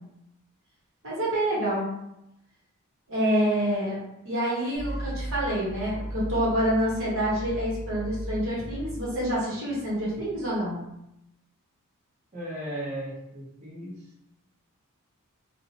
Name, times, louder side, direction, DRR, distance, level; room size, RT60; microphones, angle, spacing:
voice 1, 1.0-1.8 3.1-4.0 4.2-10.8, equal, 60° right, -6 dB, 0.9 m, -27 dB
sound 1, 4.7-10.7, right 1 dB, 35° left, 0.6 m, -37 dB
voice 2, 12.3-14.0, right 1 dB, 30° right, -8 dB, 0.9 m, -36 dB
2.6 x 2.1 x 2.8 m, 0.85 s
head